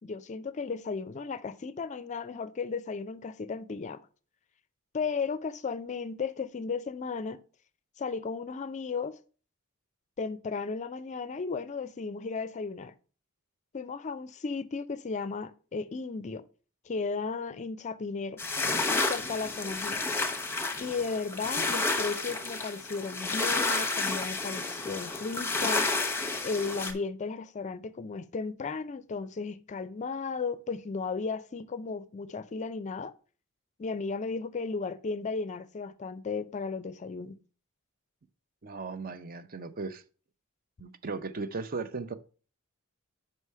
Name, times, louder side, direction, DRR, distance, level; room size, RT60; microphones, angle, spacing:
voice 1, 0.0-4.0 4.9-7.4 8.0-9.2 10.2-12.9 13.7-16.4 16.9-18.4 19.0-20.0 20.8-25.9 26.4-33.1 33.8-37.4, left 4 dB, 35° left, 0.4 m, -35 dB
sound 1, 18.4-26.9, left 3 dB, 10° left, 0.8 m, -31 dB
voice 2, 38.6-40.0 40.8-42.1, right 4 dB, 40° right, 0.5 m, -37 dB
5.4 x 4.8 x 5.5 m
head